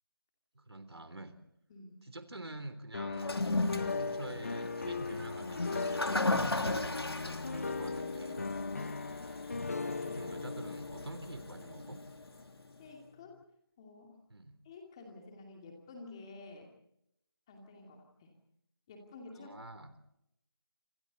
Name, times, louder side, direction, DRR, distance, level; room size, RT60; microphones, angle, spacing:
voice 1, 0.5-1.3 2.0-3.3 3.9-6.6 7.2-8.5 10.0-12.0 14.3-14.6 19.4-19.9, right 2 dB, 85° right, 10 dB, 3.7 m, -47 dB
voice 2, 1.7-2.1 6.6-7.0 9.7-10.2 12.8-13.4 13.8-14.2 14.6-16.7 17.5-18.3 18.9-19.5, left 3 dB, 10° left, 2 dB, 2.5 m, -50 dB
sound 1, 2.9-12.9, left 4 dB, 35° left, 1.3 m, -38 dB
Toilet flush, 3.1-12.4, left 2 dB, 75° left, 2.8 m, -37 dB
27.5 x 27.0 x 4.1 m, 0.79 s
figure-of-eight pair, 175°, 13 cm